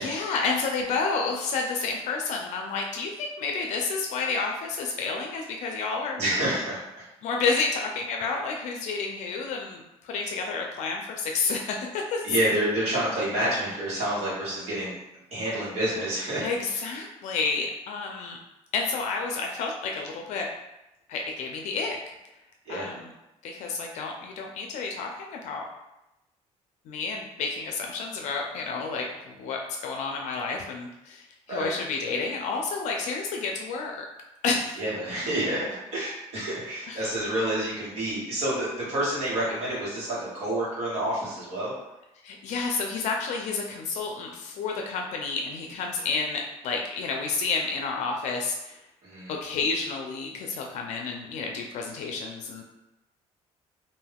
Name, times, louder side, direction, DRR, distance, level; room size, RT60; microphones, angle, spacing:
voice 1, 0.0-6.2 7.2-12.3 16.4-18.4 18.7-20.5 21.1-22.0 22.7-23.1 23.4-25.6 26.9-34.0 34.4-34.8 36.9-37.0 42.2-48.8 49.3-52.6, left 4 dB, 75° left, 1 dB, 0.4 m, -30 dB
voice 2, 6.2-7.0 7.4-7.6 12.2-15.0 15.3-16.4 16.7-17.0 22.6-22.9 31.5-31.7 34.8-35.7 35.9-41.7 49.0-49.3, right 1 dB, 60° right, -7 dB, 1.3 m, -28 dB
2.5 x 2.3 x 3.3 m, 0.93 s
cardioid pair, 130°, 12 cm